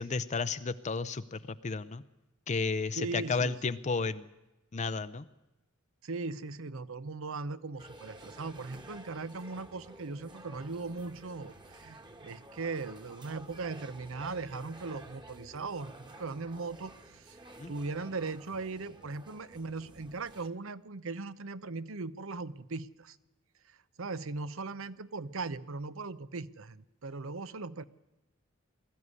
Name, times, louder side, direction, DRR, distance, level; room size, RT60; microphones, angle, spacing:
voice 1, 0.0-2.0 2.5-4.3 4.7-5.3 17.6-17.7, left 4 dB, 35° left, 12 dB, 0.6 m, -32 dB
voice 2, 3.0-3.7 6.0-17.4 17.7-23.2 23.7-27.8, right 3 dB, 70° right, 15 dB, 0.8 m, -39 dB
sound 1, 7.8-20.5, right 1 dB, 20° right, 1.5 m, -52 dB
20.5 x 14.0 x 9.7 m, 1.0 s
head